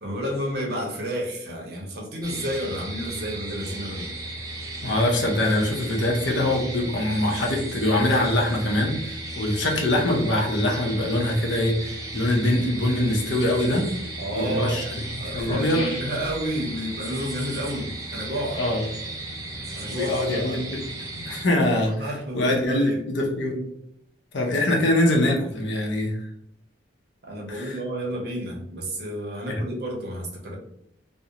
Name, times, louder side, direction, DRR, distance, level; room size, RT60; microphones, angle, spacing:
voice 1, 0.0-4.1 14.2-14.9 15.2-18.6 19.7-20.6 21.1-21.3 22.0-23.0 27.2-30.6, equal, 55° right, -1 dB, 0.6 m, -31 dB
sound 1, 2.2-21.4, right 1 dB, 20° right, 0.4 m, -35 dB
voice 2, 4.8-13.9 14.3-15.9 18.6-18.8 19.9-20.8 21.3-21.9 22.3-23.7 24.3-26.2 27.5-27.8 29.5-29.6, left 1 dB, 65° left, 0 dB, 0.6 m, -23 dB
sound 2, 15.3-16.5 18.4-18.9 20.1-20.7 21.5-22.3 22.6-22.7, left 1 dB, 20° left, 0.6 m, -38 dB
2.4 x 2.0 x 2.8 m, 0.72 s
head